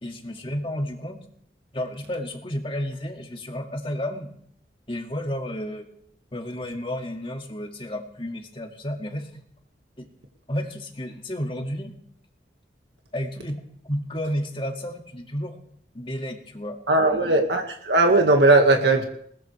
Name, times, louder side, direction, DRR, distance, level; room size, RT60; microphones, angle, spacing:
voice 1, 0.0-1.2 1.7-4.3 4.9-5.9 6.3-9.4 10.0-10.1 10.5-11.9 13.1-13.6 13.9-15.6 15.9-16.8 17.1-17.3, equal, 30° left, 2 dB, 2.2 m, -31 dB
voice 2, 16.9-19.0, right 2 dB, 70° right, 3 dB, 1.9 m, -18 dB
21.5 x 19.5 x 3.4 m, 0.65 s
head